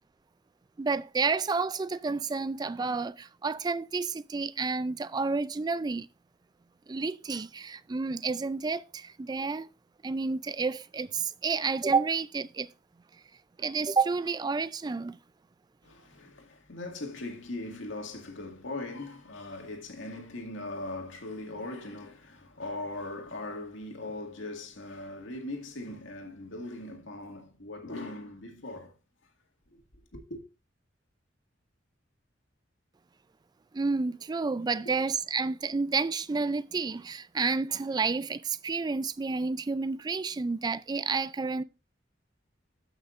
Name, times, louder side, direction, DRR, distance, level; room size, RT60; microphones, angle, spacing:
voice 1, 0.8-6.1 6.9-9.7 10.0-12.7 13.6-15.2 33.7-41.6, right 4 dB, 20° right, 0.3 m, -30 dB
voice 2, 15.8-29.0 29.7-29.8 30.1-30.4 34.9-35.0, left 2 dB, 80° left, 1.9 m, -40 dB
13.5 x 6.1 x 2.5 m
head